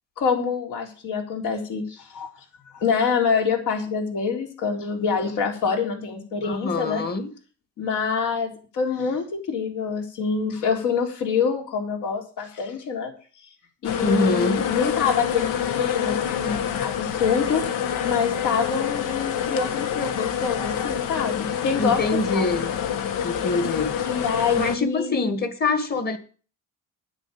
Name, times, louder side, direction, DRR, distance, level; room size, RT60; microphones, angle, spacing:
voice 1, 0.2-2.3 2.7-7.0 7.8-13.1 13.8-17.6 18.0-22.0 22.3-22.5 24.0-25.3, left 6 dB, 70° left, 3.8 m, -26 dB
voice 2, 6.4-7.3 14.0-14.6 21.8-22.7 23.2-24.0 24.6-26.2, left 3 dB, 30° left, 1.9 m, -24 dB
sound 1, 13.8-24.8, left 8 dB, 90° left, 1.4 m, -27 dB
9.9 x 7.3 x 9.1 m
cardioid pair, 130°, 31 cm